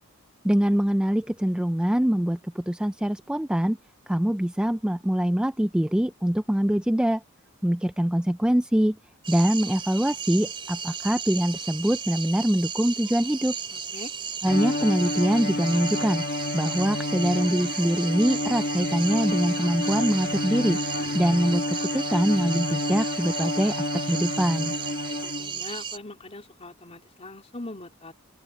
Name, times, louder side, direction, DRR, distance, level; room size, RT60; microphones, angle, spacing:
voice 1, 0.4-3.8 4.1-7.2 7.6-9.0 9.3-13.5 14.4-16.2 16.5-20.8 21.1-24.7, equal, 5° right, 0.3 m, -24 dB
sound 1, 9.2-26.0, right 6 dB, 25° right, 2.6 m, -35 dB
voice 2, 13.7-14.1 25.2-28.1, left 2 dB, 30° left, 3.9 m, -41 dB
Bowed string instrument, 14.4-25.7, left 2 dB, 45° left, 1.6 m, -30 dB
open air
head